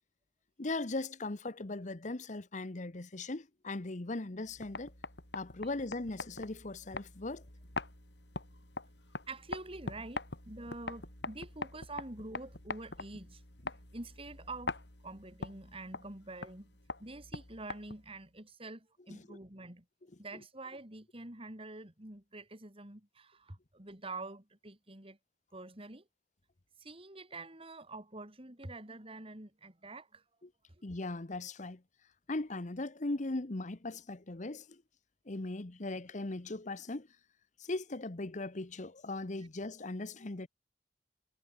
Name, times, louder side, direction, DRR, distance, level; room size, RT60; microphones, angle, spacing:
voice 1, 0.6-4.9 5.3-7.4 19.3-19.4 30.4-30.5 30.8-31.8 32.3-34.8 35.3-37.1 37.6-40.5, left 2 dB, 45° left, 1.1 m, -39 dB
sound 1, 4.5-18.2, left 3 dB, 70° left, 5.7 m, -44 dB
voice 2, 9.3-13.4 13.9-14.8 15.0-16.7 17.0-19.9 20.2-25.2 25.5-26.1 26.8-30.2, right 2 dB, 30° right, 3.5 m, -46 dB
head